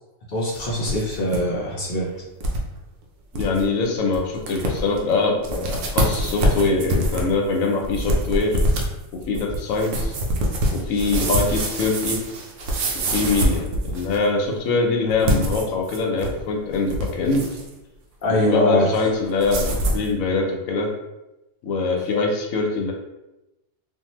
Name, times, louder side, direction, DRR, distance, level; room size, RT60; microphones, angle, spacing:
voice 1, 0.3-2.1 18.2-18.9, left 1 dB, 55° left, -4 dB, 0.6 m, -22 dB
sound 1, 0.5-1.4 1.7-1.8 2.4-2.6 3.0-3.1 3.3-3.6 4.1-4.2 4.5-5.0 5.4-14.3 15.1-16.4 16.7-17.7 19.4-20.1, right 1 dB, 70° right, 0.9 m, -24 dB
voice 2, 3.3-8.6 9.3-10.1 10.7-12.2 13.0-17.4 18.4-20.9 21.6-22.9, left 3 dB, 80° left, 1 dB, 1.0 m, -23 dB
2.7 x 2.3 x 3.0 m, 0.97 s
omnidirectional pair, 1.4 m